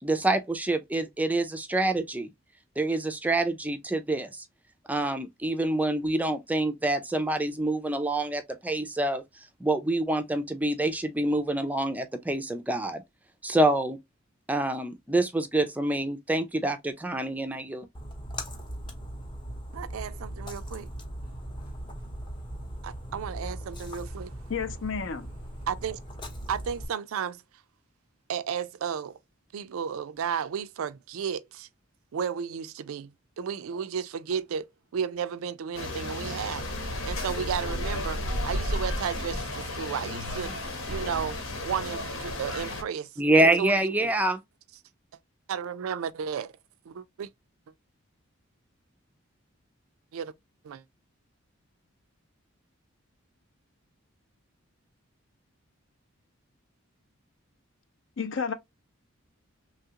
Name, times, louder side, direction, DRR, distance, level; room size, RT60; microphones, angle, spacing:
voice 1, 0.0-2.3 2.8-4.4 4.9-13.0 13.4-14.0 14.5-17.9 43.2-44.4, right 2 dB, 5° right, 0.4 m, -26 dB
Splash splatter, 17.9-26.8, equal, 20° left, 0.7 m, -39 dB
voice 2, 19.7-20.9 22.8-24.3 25.7-26.0 26.5-27.4 28.3-29.2 29.5-31.7 32.1-34.7 34.9-36.7 37.1-43.1 43.6-44.1 45.5-46.5 46.9-47.3 50.1-50.3 50.6-50.8, right 7 dB, 80° right, 0.4 m, -33 dB
voice 3, 24.5-25.3 58.2-58.5, left 5 dB, 60° left, 0.6 m, -31 dB
sound 1, 35.7-42.8, left 1 dB, 80° left, 1.1 m, -33 dB
3.1 x 2.3 x 2.8 m
head